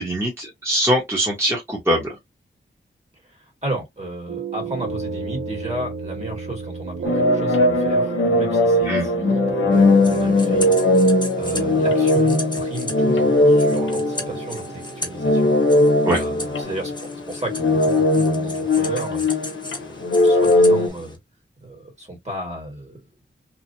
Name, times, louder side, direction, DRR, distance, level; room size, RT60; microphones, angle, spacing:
voice 1, 0.0-2.1 8.8-9.1 16.0-16.2, right 1 dB, 15° right, 1.2 m, -22 dB
voice 2, 3.6-10.7 11.4-15.6 16.1-16.9 17.3-19.3 19.7-21.2 21.6-23.0, right 1 dB, 35° right, 2.0 m, -34 dB
sound 1, 4.3-16.6, right 6 dB, 85° right, 0.7 m, -32 dB
sound 2, 7.0-14.8 15.1-20.9, left 2 dB, 85° left, 0.8 m, -19 dB
sound 3, 9.7-21.2, left 2 dB, 20° left, 1.1 m, -36 dB
3.1 x 2.4 x 2.7 m
wide cardioid pair, 80°, 20 cm